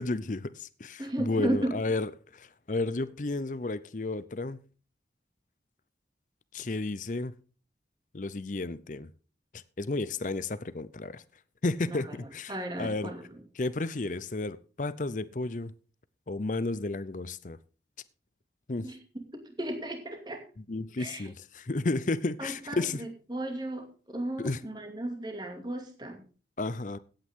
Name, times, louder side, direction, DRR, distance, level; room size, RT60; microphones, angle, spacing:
voice 1, 0.0-4.6 6.5-7.3 8.1-9.1 9.5-11.2 11.6-13.1 13.6-15.7 16.3-17.6 18.7-18.9 20.7-23.0 24.4-24.6 26.6-27.0, left 2 dB, 45° left, 0.6 m, -32 dB
voice 2, 1.0-1.8 11.9-12.0 12.5-13.4 18.8-19.0 19.3-20.4 21.0-21.3 22.4-26.2, right 1 dB, 25° right, 2.4 m, -35 dB
16.0 x 8.9 x 3.7 m
head